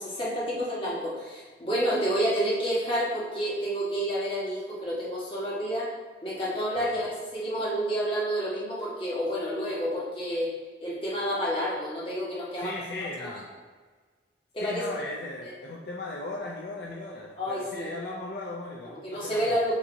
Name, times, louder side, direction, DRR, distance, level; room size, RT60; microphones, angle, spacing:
voice 1, 0.0-5.9 6.2-10.5 10.8-12.7 13.2-13.3 14.5-14.8 17.4-17.9 19.0-19.7, equal, 30° left, -7 dB, 1.3 m, -29 dB
voice 2, 12.6-13.5 14.6-19.6, left 2 dB, 60° left, -2 dB, 0.5 m, -37 dB
7.3 x 2.8 x 2.7 m, 1.4 s
head